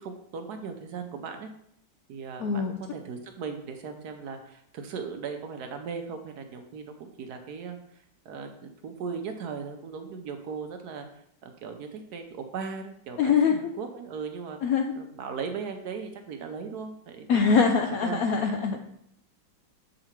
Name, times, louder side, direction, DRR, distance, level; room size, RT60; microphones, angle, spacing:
voice 1, 0.0-1.5 2.1-7.8 8.2-11.1 11.4-14.6 15.0-17.7 18.0-18.8, right 5 dB, 65° right, 6 dB, 1.1 m, -38 dB
voice 2, 2.4-2.8 13.2-13.7 14.6-14.9 17.3-18.8, left 5 dB, 75° left, 4 dB, 0.8 m, -23 dB
7.2 x 3.8 x 4.4 m, 0.72 s
omnidirectional pair, 2.0 m